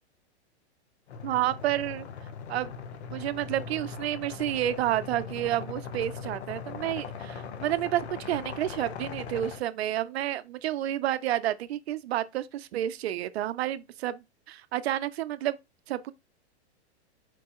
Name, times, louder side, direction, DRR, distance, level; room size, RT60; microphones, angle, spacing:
sound 1, 1.1-9.6, left 6 dB, 70° left, 0.8 m, -40 dB
voice 1, 1.2-2.1 2.5-2.7 3.1-15.6 15.9-16.1, right 13 dB, 65° right, 0.5 m, -30 dB
4.5 x 3.1 x 2.9 m
hypercardioid pair, 140°, 34 cm